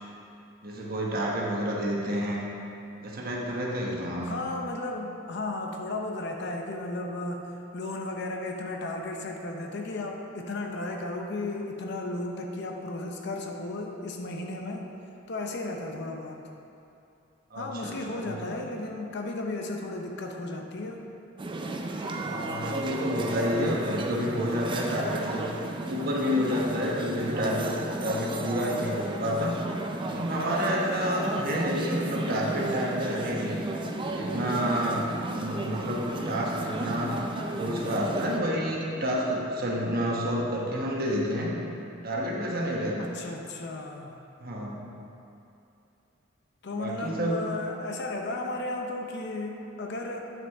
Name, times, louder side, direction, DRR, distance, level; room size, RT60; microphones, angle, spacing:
voice 1, 0.6-2.4 3.0-4.3 17.5-18.3 22.2-25.5 25.9-27.8 28.0-29.6 30.0-33.6 34.1-37.2 37.5-41.5 42.0-42.9 44.4-44.9 46.7-47.4, equal, 50° right, -3 dB, 1.2 m, -29 dB
voice 2, 4.2-14.9 15.3-16.4 17.6-21.0 30.9-31.5 43.0-44.2 46.6-50.3, left 2 dB, 60° left, 2 dB, 0.7 m, -34 dB
sound 1, 21.4-38.4, right 2 dB, 25° right, 0.5 m, -34 dB
9.0 x 6.0 x 3.5 m, 2.7 s
head